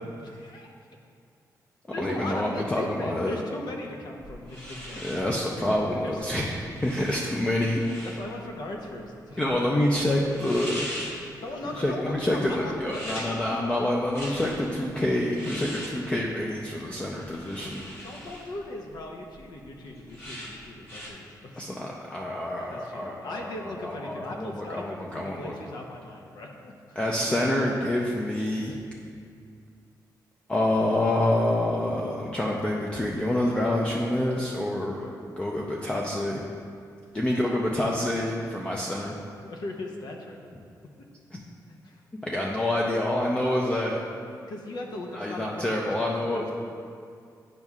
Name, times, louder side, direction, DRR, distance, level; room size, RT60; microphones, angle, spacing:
voice 1, 0.2-0.7 1.9-5.1 5.9-6.3 8.1-9.6 11.4-13.6 18.0-21.7 22.7-27.0 37.2-37.6 39.4-40.6 41.8-42.0 44.5-46.5, left 2 dB, 75° left, 1 dB, 0.8 m, -38 dB
voice 2, 2.0-3.4 5.0-8.1 9.4-10.9 11.8-17.8 21.6-23.5 23.8-25.5 27.0-28.8 30.5-35.1 35.4-36.4 37.1-39.2 41.3-41.4 42.2-44.0 45.1-46.5, left 1 dB, 15° left, -3 dB, 0.4 m, -27 dB
sound 1, 4.2-21.1, equal, 35° left, 1.4 m, -42 dB
10.5 x 5.3 x 2.4 m, 2.3 s
wide cardioid pair, 155°, 7 cm